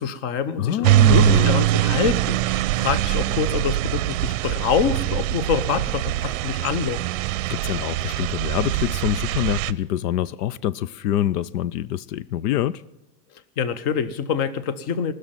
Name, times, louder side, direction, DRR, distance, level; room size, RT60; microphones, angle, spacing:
voice 1, 0.0-7.0 13.6-15.1, left 7 dB, 30° left, 0.8 m, -26 dB
voice 2, 0.6-1.6 7.5-12.8, left 12 dB, 80° left, 0.6 m, -25 dB
sound 1, 0.8-9.7, right 15 dB, 60° right, 0.6 m, -22 dB
19.5 x 6.6 x 8.9 m
supercardioid pair, 170°, 47 cm